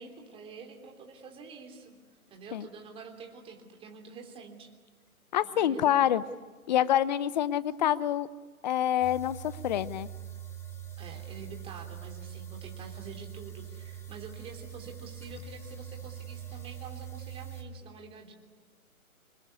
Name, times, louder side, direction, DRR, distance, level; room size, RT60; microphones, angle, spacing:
voice 1, 0.0-2.0 2.3-4.7 5.4-6.2 11.0-18.3, right 5 dB, 10° right, 2 dB, 3.3 m, -47 dB
voice 2, 5.3-6.2 6.7-8.3 8.6-10.1, left 11 dB, 30° left, 17 dB, 0.8 m, -26 dB
sound 1, 9.0-17.6, right 9 dB, 5° left, 1.6 m, -43 dB
26.0 x 21.5 x 9.7 m, 1.5 s
hypercardioid pair, 145°, 43 cm